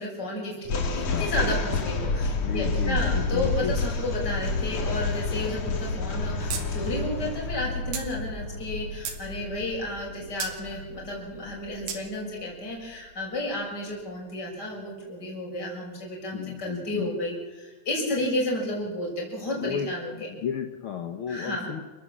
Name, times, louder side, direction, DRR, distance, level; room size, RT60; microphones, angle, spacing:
voice 1, 0.0-20.3 21.3-21.7, left 1 dB, 25° left, -2 dB, 6.8 m, -32 dB
sound 1, 0.6-11.9, left 3 dB, 50° left, 3.0 m, -29 dB
voice 2, 2.4-3.7 16.3-17.1 19.6-19.9 20.3-21.8, left 8 dB, 80° left, 7 dB, 1.1 m, -33 dB
sound 2, 6.5-6.6 6.9-7.0 7.9-8.1 8.7-9.2 10.4-10.6 11.9-12.0, right 7 dB, 80° right, 4.3 m, -32 dB
29.5 x 15.5 x 7.4 m, 1.3 s
omnidirectional pair, 4.2 m